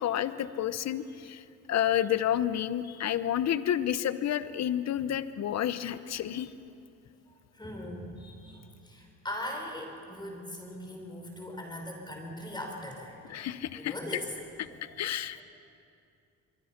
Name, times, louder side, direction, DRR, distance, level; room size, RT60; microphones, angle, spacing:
voice 1, 0.0-1.4 1.7-6.5 13.3-13.9 14.6-14.7 15.0-15.4, left 11 dB, 60° left, 13 dB, 0.9 m, -30 dB
voice 2, 7.5-13.5 13.7-14.3 14.7-14.9, left 1 dB, 15° left, 1 dB, 5.1 m, -40 dB
24.5 x 23.0 x 5.9 m, 2.5 s
cardioid pair, 90°, 30 cm